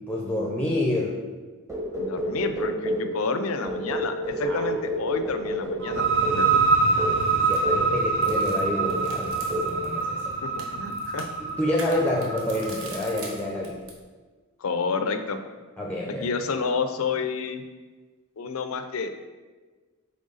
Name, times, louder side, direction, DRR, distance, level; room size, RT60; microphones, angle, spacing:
voice 1, 0.1-1.2 4.4-4.7 6.9-10.3 11.4-13.8 15.8-16.3, left 1 dB, 5° left, -3 dB, 0.6 m, -28 dB
sound 1, 1.7-3.1 3.6-6.5 7.0-7.2 7.6-7.9 8.3-8.6 8.8-9.1 9.5-9.8, equal, 15° right, 1.0 m, -29 dB
voice 2, 2.0-6.6 10.4-11.3 14.6-15.4 16.2-17.6 18.4-19.1, left 4 dB, 75° left, 8 dB, 0.5 m, -29 dB
sound 2, 5.8-13.3, right 4 dB, 55° right, 0.7 m, -25 dB
sound 3, 7.0-14.0, right 3 dB, 75° right, 1.2 m, -45 dB
7.8 x 3.5 x 4.0 m, 1.3 s
head